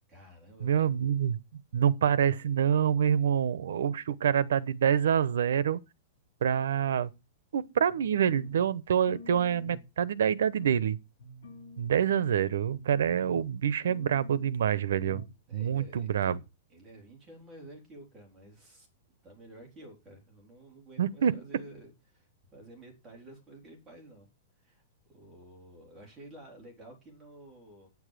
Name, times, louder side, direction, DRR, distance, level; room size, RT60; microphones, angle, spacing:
voice 1, 0.1-0.9 15.5-16.4 16.7-18.9 19.2-24.3 24.6-24.8 25.1-27.9, right 1 dB, 10° right, 3.8 m, -51 dB
voice 2, 0.6-1.4 1.7-5.8 6.4-7.1 7.5-11.0 11.8-15.2 15.5-16.4 21.0-21.3, right 8 dB, 90° right, 0.9 m, -26 dB
sound 1, 7.9-8.7 9.1-9.9 10.3-10.8 11.2-12.4 12.7-13.6 13.8-14.6 15.0-15.4 15.6-15.7, left 2 dB, 65° left, 5.3 m, -47 dB
9.5 x 7.3 x 6.6 m
supercardioid pair, 175°, 0 cm